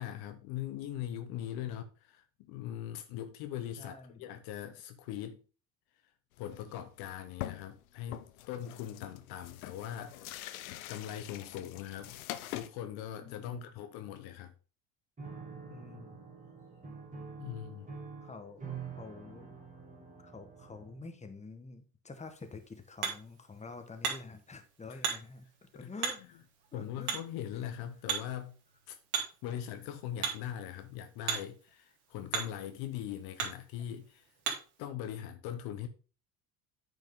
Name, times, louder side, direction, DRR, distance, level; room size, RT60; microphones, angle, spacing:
voice 1, 0.0-5.4 6.4-12.1 12.5-14.5 17.4-17.9 24.9-25.0 25.8-25.9 26.7-28.6 28.9-29.0 29.4-34.3 34.8-35.9, left 11 dB, 60° left, 1.0 m, -41 dB
voice 2, 3.8-4.3 13.2-13.7 15.7-16.2 18.2-18.7 19.0-19.6 20.2-26.4 26.7-27.2 27.5-27.7, left 3 dB, 15° left, 1.6 m, -48 dB
sound 1, 6.4-6.7 7.0-7.1 7.4-7.8 8.1-12.7, left 14 dB, 80° left, 0.7 m, -44 dB
Piano, 15.2-21.1, right 5 dB, 20° right, 2.8 m, -46 dB
Hammer, 22.1-34.8, right 7 dB, 60° right, 2.7 m, -40 dB
9.2 x 5.4 x 3.7 m
hypercardioid pair, 70°, 41 cm